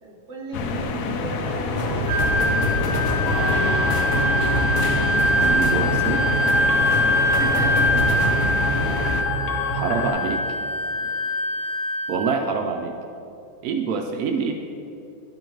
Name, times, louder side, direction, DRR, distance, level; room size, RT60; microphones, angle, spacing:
voice 1, 0.0-3.0 7.2-8.0 8.4-8.6 11.0-11.1 11.6-11.7, right 2 dB, 40° right, -2 dB, 1.3 m, -34 dB
sound 1, 0.5-9.2, left 4 dB, 75° left, 0.9 m, -27 dB
sound 2, 1.8-10.1, equal, 55° left, 1.2 m, -26 dB
Wind instrument woodwind instrument, 2.1-12.4, equal, 60° right, 1.0 m, -23 dB
voice 2, 5.5-6.6 9.7-10.4 12.1-13.0 13.6-14.5, right 5 dB, 85° right, 3 dB, 0.8 m, -26 dB
11.5 x 3.9 x 4.5 m, 2.6 s
omnidirectional pair, 2.2 m